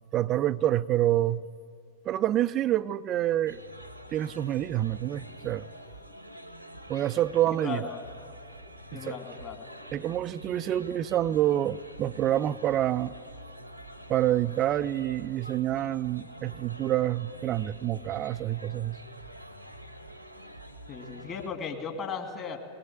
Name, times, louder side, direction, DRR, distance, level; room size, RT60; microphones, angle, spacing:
voice 1, 0.1-1.4 2.0-3.6 4.1-5.7 6.9-7.9 8.9-9.2 9.9-13.1 14.1-19.0, right 12 dB, 35° right, 0.5 m, -27 dB
sound 1, 3.4-21.5, equal, 90° right, 1.3 m, -46 dB
voice 2, 7.6-8.0 8.9-9.7 20.9-22.6, left 6 dB, 30° left, 2.6 m, -36 dB
21.0 x 20.0 x 8.7 m
figure-of-eight pair, 90°, 0 cm